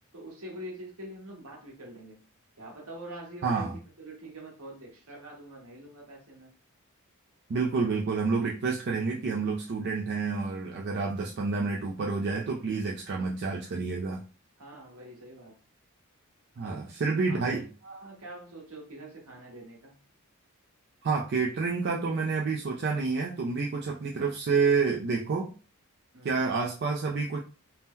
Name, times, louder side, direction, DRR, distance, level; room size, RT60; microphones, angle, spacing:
voice 1, 0.1-2.2 2.6-6.5 11.1-11.7 14.6-15.5 16.6-16.9 17.3-19.9 26.1-26.5, right 1 dB, 75° right, 1.2 m, -45 dB
voice 2, 3.4-3.7 7.5-14.2 16.6-17.7 21.0-25.5 26.2-27.4, right 4 dB, 50° right, 0.4 m, -29 dB
2.7 x 2.1 x 3.6 m
head